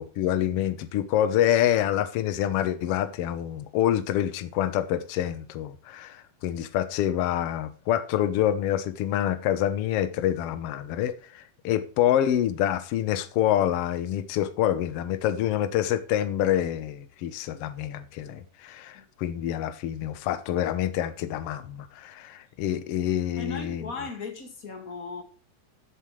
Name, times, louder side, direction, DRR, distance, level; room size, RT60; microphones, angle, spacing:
voice 1, 0.0-23.9, left 11 dB, 65° left, 1.5 m, -27 dB
voice 2, 23.4-25.2, left 4 dB, 30° left, 1.9 m, -37 dB
15.5 x 7.5 x 3.2 m
omnidirectional pair, 3.6 m